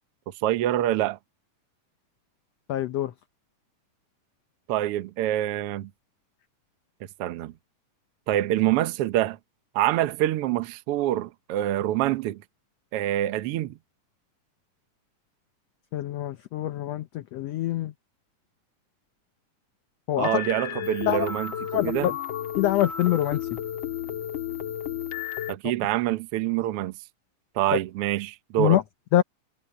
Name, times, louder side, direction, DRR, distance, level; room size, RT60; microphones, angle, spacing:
voice 1, 0.4-1.2 4.7-5.9 7.2-7.5 8.3-9.4 9.7-12.4 12.9-13.8 20.2-21.5 21.8-22.1 25.5-26.9 27.6-28.8, right 13 dB, 75° right, 1.3 m, -25 dB
voice 2, 2.7-3.1 15.9-17.9 20.1-20.3 21.1-21.3 21.7-22.1 22.6-23.4 27.7-27.8 28.6-28.8 29.1-29.2, left 13 dB, 75° left, 1.6 m, -24 dB
sound 1, 20.2-25.5, left 11 dB, 45° left, 2.1 m, -32 dB
omnidirectional pair, 3.8 m